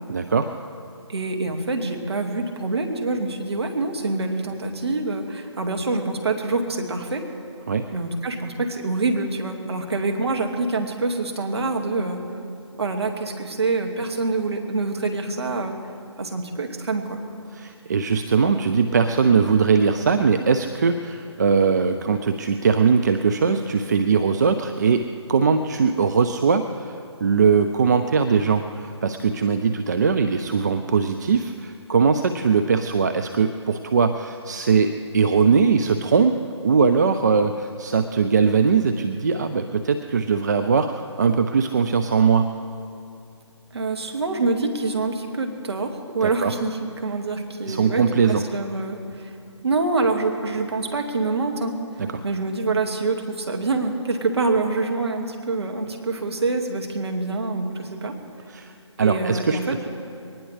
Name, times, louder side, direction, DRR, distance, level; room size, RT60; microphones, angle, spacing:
voice 1, 0.1-0.5 7.7-7.8 17.5-27.0 27.2-36.3 36.6-42.5 46.2-46.5 47.7-48.4 52.0-52.2 58.5-58.7 59.0-59.8, right 5 dB, 35° right, 7 dB, 0.5 m, -20 dB
voice 2, 1.1-7.3 7.9-12.2 12.8-15.8 16.2-17.2 43.7-49.3 49.6-51.8 52.2-58.2 59.0-59.9, right 3 dB, 60° right, 3 dB, 2.0 m, -26 dB
22.5 x 19.5 x 3.3 m, 2.6 s
figure-of-eight pair, 150°, 16 cm